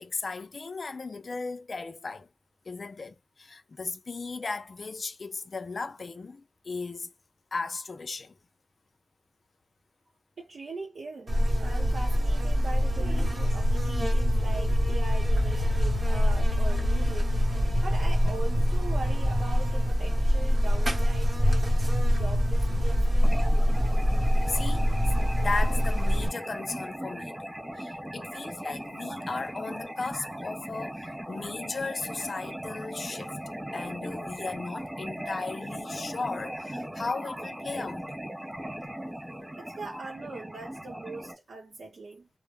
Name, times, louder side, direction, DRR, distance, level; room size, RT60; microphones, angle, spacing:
voice 1, 0.0-2.3 2.7-7.1 7.5-8.4 17.7-17.8 18.2-18.4 24.5-24.9 25.4-27.4 27.8-33.3 33.7-38.1, left 4 dB, 50° left, 0.4 m, -36 dB
voice 2, 10.4-17.4 17.8-21.7 22.1-23.3 39.6-42.3, right 3 dB, 75° right, 0.7 m, -41 dB
Buzz, 11.3-26.3, equal, 45° right, 1.0 m, -24 dB
sound 1, 23.2-41.3, equal, 15° right, 0.6 m, -38 dB
2.1 x 2.1 x 3.5 m
wide cardioid pair, 130°, 0 cm